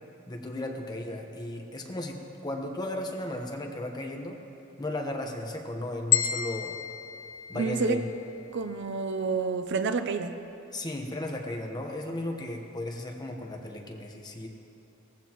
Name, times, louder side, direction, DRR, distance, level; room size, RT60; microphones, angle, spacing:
voice 1, 0.3-2.2 2.4-4.4 4.8-6.8 7.5-8.1 10.7-14.5, left 1 dB, 20° left, 1 dB, 1.1 m, -35 dB
sound 1, 6.1-8.3, left 11 dB, 85° left, 1.1 m, -30 dB
voice 2, 7.5-8.0 8.5-10.3, right 4 dB, 55° right, 9 dB, 0.6 m, -29 dB
18.0 x 15.0 x 3.0 m, 2.8 s
head